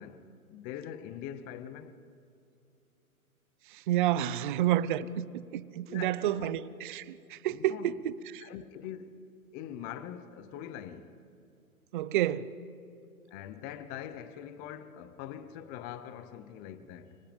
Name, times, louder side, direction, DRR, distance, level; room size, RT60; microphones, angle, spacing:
voice 1, 0.0-2.0 5.9-6.5 7.5-8.0 8.4-9.2 9.5-11.2 13.3-17.2, left 10 dB, 20° left, 0.8 m, -43 dB
voice 2, 3.7-8.4 11.9-12.5, right 12 dB, 35° right, 0.7 m, -30 dB
29.5 x 25.0 x 5.3 m
hypercardioid pair, 140°, 44 cm